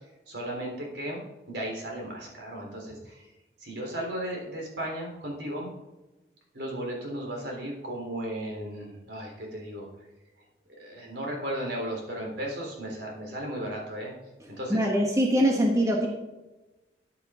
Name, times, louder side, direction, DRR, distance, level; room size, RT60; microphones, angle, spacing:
voice 1, 0.3-1.2 1.5-3.2 3.6-5.7 6.5-9.9 10.8-14.1 14.5-14.9, right 1 dB, 70° right, -1 dB, 3.8 m, -35 dB
voice 2, 14.7-16.1, equal, 15° right, 0 dB, 1.3 m, -23 dB
13.5 x 8.3 x 3.8 m, 1.1 s
head